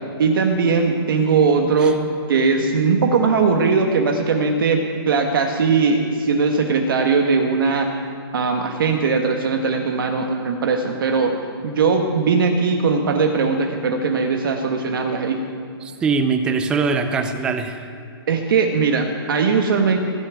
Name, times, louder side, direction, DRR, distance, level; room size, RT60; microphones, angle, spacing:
voice 1, 0.2-2.0 2.3-8.0 8.3-11.3 11.6-15.4 18.3-20.0, right 4 dB, 60° right, 3 dB, 1.4 m, -19 dB
voice 2, 15.8-17.9, right 4 dB, 5° right, 8 dB, 0.4 m, -22 dB
16.5 x 7.0 x 9.6 m, 2.3 s
hypercardioid pair, 170°, 13 cm